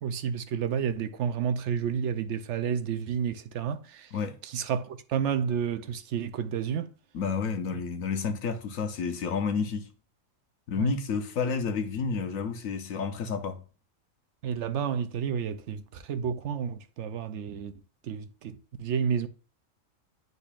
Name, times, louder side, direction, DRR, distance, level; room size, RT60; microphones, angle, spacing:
voice 1, 0.0-4.1 4.4-6.9 10.8-10.9 14.4-17.7 18.0-19.3, right 7 dB, 70° right, 0.8 m, -30 dB
voice 2, 7.1-9.9 10.7-13.6, left 5 dB, 90° left, 1.2 m, -30 dB
10.0 x 4.0 x 2.4 m
omnidirectional pair, 1.4 m